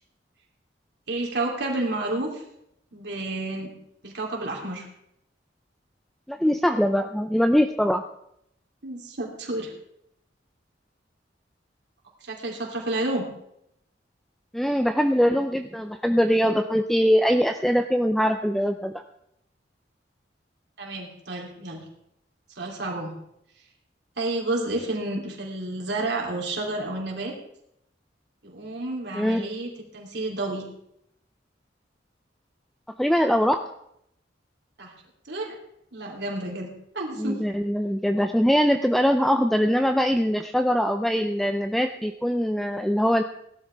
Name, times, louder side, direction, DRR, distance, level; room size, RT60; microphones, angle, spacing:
voice 1, 1.1-2.4 2.9-3.7 4.0-4.9 8.8-9.7 12.2-13.3 20.8-21.8 22.6-23.1 24.2-27.3 28.4-30.6 34.8-34.9 35.2-35.6 35.9-36.7 36.9-37.4, right 2 dB, 65° right, -1 dB, 3.1 m, -30 dB
voice 2, 6.3-8.0 14.5-19.0 29.1-29.4 33.0-33.6 37.2-43.2, equal, ahead, 7 dB, 0.4 m, -22 dB
17.5 x 12.0 x 3.5 m, 0.76 s
head